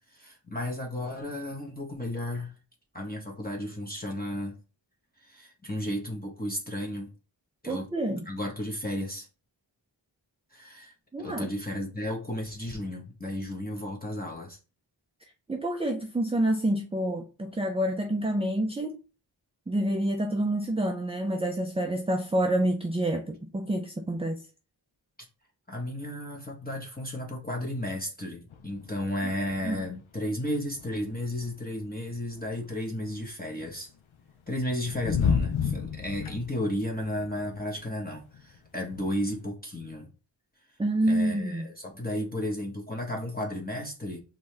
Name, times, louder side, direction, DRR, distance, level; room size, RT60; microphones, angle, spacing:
voice 1, 0.1-2.5 2.9-4.6 5.2-7.1 7.6-7.9 8.3-9.3 10.5-10.9 11.2-14.6 25.7-33.9 34.5-40.1 41.1-44.2, left 1 dB, 20° left, 1.0 m, -33 dB
voice 2, 7.7-8.3 11.1-11.5 15.5-18.9 19.7-24.4 29.6-29.8 40.8-41.7, right 1 dB, 15° right, 0.4 m, -28 dB
sound 1, 28.5-29.9 30.2-30.3 30.5-33.3 33.9-39.4, left 6 dB, 80° left, 0.6 m, -33 dB
5.3 x 2.8 x 3.2 m
wide cardioid pair, 40°, 47 cm